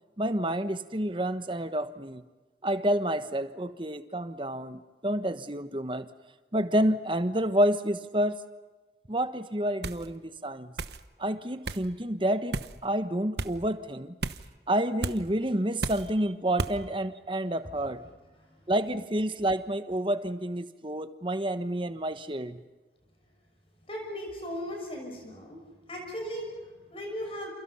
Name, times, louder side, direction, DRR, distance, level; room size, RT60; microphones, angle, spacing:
voice 1, 0.2-2.2 2.6-6.1 6.5-8.4 9.1-10.7 11.2-14.1 14.7-18.0 18.7-22.6, right 1 dB, 30° right, 10 dB, 1.2 m, -29 dB
sound 1, 9.8-10.1 10.8-11.0 11.6-11.8 12.5-12.8 13.4-13.5 14.2-14.5 15.0-15.2 15.8-16.1 16.6-16.8, right 3 dB, 70° right, 1.1 m, -33 dB
voice 2, 23.9-25.6 25.9-27.5, equal, 30° left, 2 dB, 6.2 m, -37 dB
29.0 x 29.0 x 5.6 m, 1.3 s
head